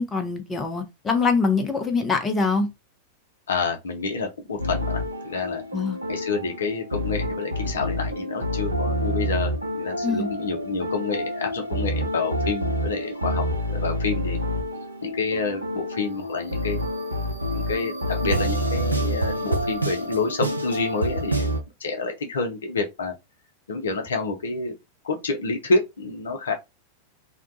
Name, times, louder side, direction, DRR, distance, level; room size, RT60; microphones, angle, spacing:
voice 1, 0.0-2.7 5.7-6.0 10.0-10.3, left 4 dB, 20° left, 0.6 m, -24 dB
voice 2, 3.5-5.6 6.1-14.4 14.7-16.8 17.5-23.1 23.7-24.7 25.0-26.5, left 4 dB, 65° left, 0.6 m, -28 dB
sound 1, 4.6-21.6, equal, 85° right, 0.5 m, -28 dB
2.8 x 2.2 x 2.6 m
figure-of-eight pair, 90°, 0 cm